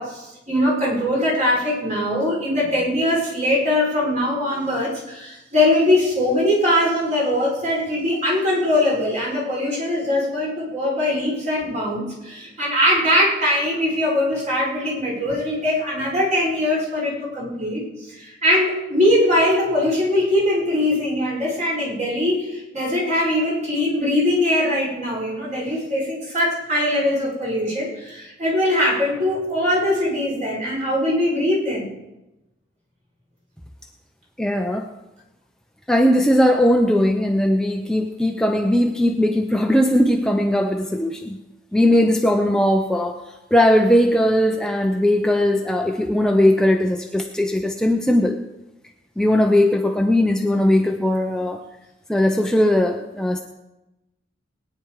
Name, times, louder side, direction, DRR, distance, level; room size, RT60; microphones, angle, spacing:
voice 1, 0.0-31.9, left 1 dB, 40° right, -4 dB, 5.5 m, -21 dB
voice 2, 34.4-34.9 35.9-41.4 41.7-48.4 49.2-51.6 52.1-53.4, left 1 dB, 5° left, 3 dB, 0.7 m, -19 dB
20.5 x 9.7 x 4.8 m, 0.98 s
head